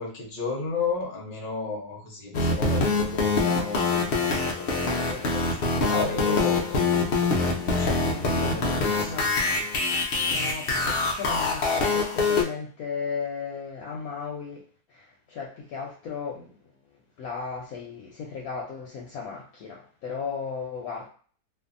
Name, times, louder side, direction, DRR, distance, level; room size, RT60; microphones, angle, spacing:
voice 1, 0.0-6.9 7.2-9.1, left 4 dB, 45° left, -1 dB, 0.7 m, -33 dB
sound 1, 2.3-12.4, left 3 dB, 90° left, 0.5 m, -25 dB
voice 2, 8.1-9.3 10.2-14.6 14.9-16.6 17.2-21.1, left 5 dB, 70° left, -1 dB, 1.0 m, -36 dB
2.6 x 2.6 x 2.5 m, 0.43 s
omnidirectional pair, 1.8 m